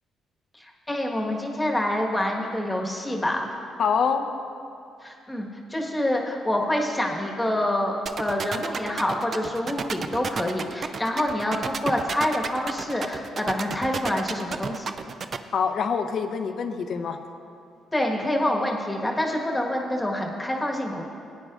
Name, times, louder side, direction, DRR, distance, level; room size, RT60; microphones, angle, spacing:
voice 1, 0.6-3.4 5.0-14.9 17.9-21.0, left 1 dB, 10° left, 0 dB, 1.4 m, -27 dB
voice 2, 3.8-4.2 15.5-17.2, left 6 dB, 60° left, 7 dB, 0.7 m, -25 dB
sound 1, 8.1-15.4, right 5 dB, 50° right, 0.5 m, -30 dB
18.0 x 9.5 x 2.5 m, 2.4 s
cardioid pair, 90°, 0 cm